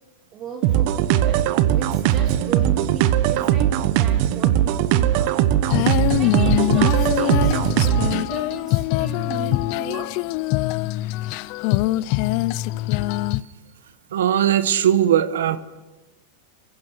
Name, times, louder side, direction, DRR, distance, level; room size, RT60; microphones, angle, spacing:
voice 1, 0.3-1.4 1.8-5.3 6.1-10.1, right 5 dB, 35° right, 2 dB, 2.3 m, -36 dB
sound 1, 0.6-8.2, right 12 dB, 55° right, 1.1 m, -20 dB
Female singing, 5.6-13.4, left 17 dB, 55° left, 0.6 m, -23 dB
voice 2, 14.1-15.6, right 10 dB, 90° right, 13 dB, 1.3 m, -19 dB
27.5 x 16.0 x 6.2 m, 1.2 s
supercardioid pair, 130°, 0 cm